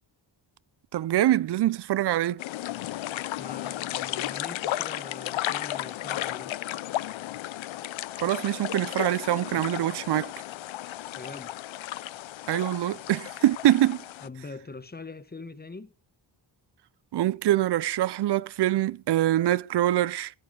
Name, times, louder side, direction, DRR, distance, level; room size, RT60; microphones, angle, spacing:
voice 1, 0.9-2.4 8.2-10.3 12.5-14.0 17.1-20.3, right 13 dB, 60° right, 0.5 m, -24 dB
sound 1, 2.4-14.3, left 14 dB, 85° left, 0.6 m, -34 dB
voice 2, 3.4-6.6 11.2-11.5 14.2-15.9, left 3 dB, 20° left, 1.1 m, -42 dB
17.5 x 7.2 x 5.0 m
wide cardioid pair, 100°, 45 cm